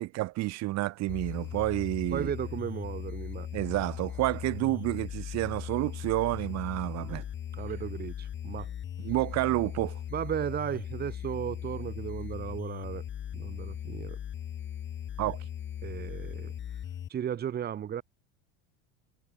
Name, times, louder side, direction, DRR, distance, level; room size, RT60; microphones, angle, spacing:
voice 1, 0.0-2.3 3.5-7.2 9.0-10.0 15.2-15.5, right 18 dB, 55° right, 1.9 m, -30 dB
sound 1, 1.1-17.1, left 10 dB, 35° left, 3.6 m, -38 dB
voice 2, 2.1-3.5 7.0-7.2 7.5-8.7 10.1-13.0 13.3-14.2 15.8-16.5 17.1-18.0, right 9 dB, 30° right, 1.5 m, -35 dB
supercardioid pair, 125°, 32 cm